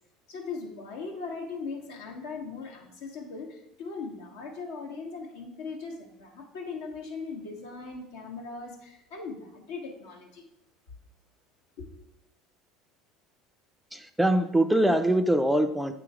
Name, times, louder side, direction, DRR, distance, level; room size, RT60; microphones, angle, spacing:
voice 1, 0.3-10.4 11.8-11.9, left 4 dB, 80° left, 0 dB, 1.3 m, -39 dB
voice 2, 13.9-15.9, right 1 dB, 5° right, 9 dB, 0.4 m, -23 dB
8.0 x 3.0 x 4.9 m, 0.81 s
supercardioid pair, 85°, 0 cm